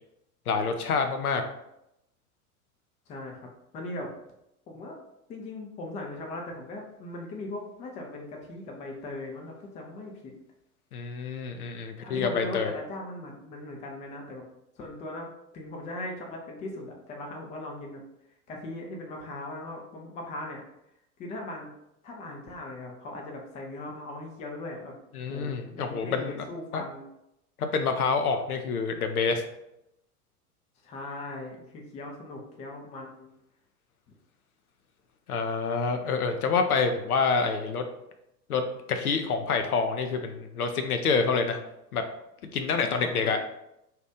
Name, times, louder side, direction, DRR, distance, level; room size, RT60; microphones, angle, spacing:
voice 1, 0.5-1.4 10.9-12.7 25.1-26.4 26.7-26.8 27.6-29.4 35.3-37.8 38.5-41.6 41.9-42.0 42.5-43.4, left 5 dB, 75° left, 6 dB, 0.5 m, -27 dB
voice 2, 3.1-3.5 3.7-4.1 4.7-5.0 5.3-10.3 12.0-14.4 14.8-15.3 15.5-18.0 18.5-20.6 21.2-21.7 22.0-24.9 25.3-27.1 30.8-33.3 42.9-43.3, left 2 dB, 15° left, 0 dB, 0.4 m, -39 dB
2.8 x 2.3 x 3.5 m, 0.83 s
figure-of-eight pair, 80°, 45 cm